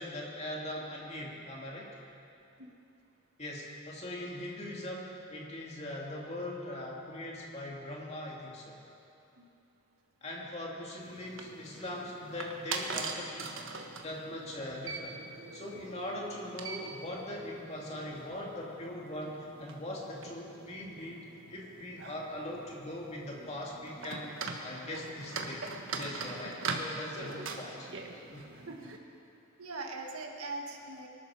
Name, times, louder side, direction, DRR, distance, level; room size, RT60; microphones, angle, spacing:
voice 1, 0.0-1.9 3.4-8.8 10.2-15.2 15.5-21.2 21.5-24.3 24.6-25.6 25.9-27.9 28.3-28.5, left 1 dB, 30° left, -3 dB, 2.4 m, -41 dB
sound 1, 11.0-29.0, right 3 dB, 60° right, 1.4 m, -42 dB
voice 2, 29.6-31.1, right 3 dB, 85° right, 1 dB, 1.9 m, -41 dB
23.0 x 12.5 x 4.9 m, 2.7 s
head